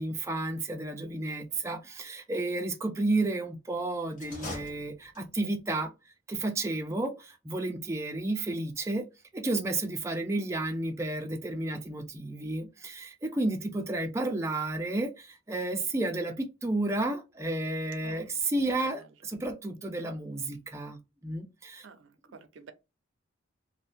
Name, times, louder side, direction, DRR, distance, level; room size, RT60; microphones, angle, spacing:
voice 1, 0.0-5.9 6.3-7.1 7.5-9.1 9.3-21.9, right 2 dB, 15° right, 0.4 m, -32 dB
sound 1, 4.1-5.5, left 2 dB, 40° left, 1.1 m, -42 dB
voice 2, 21.8-22.7, right 5 dB, 80° right, 0.5 m, -50 dB
2.7 x 2.1 x 3.4 m
head